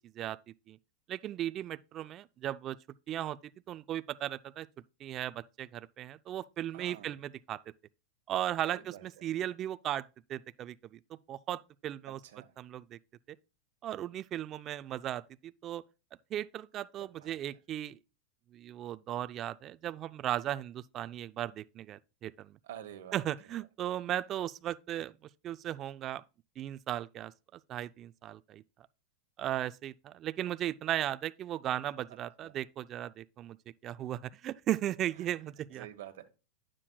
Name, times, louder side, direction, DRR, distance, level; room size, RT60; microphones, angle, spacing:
voice 1, 1.1-2.8 3.1-4.7 5.0-7.6 8.3-11.0 11.3-12.2 12.6-13.0 13.3-13.4 13.8-15.8 16.3-18.0 18.5-22.6 23.1-25.1 25.4-26.2 26.6-28.9 29.4-33.6 33.8-35.9, right 12 dB, 35° right, 0.3 m, -36 dB
voice 2, 6.7-7.1 8.7-9.1 12.3-12.5 17.0-17.4 22.6-23.2 32.4-32.6 35.2-35.3 35.7-36.3, right 11 dB, 75° right, 1.2 m, -48 dB
9.7 x 7.4 x 2.3 m
hypercardioid pair, 125°, 0 cm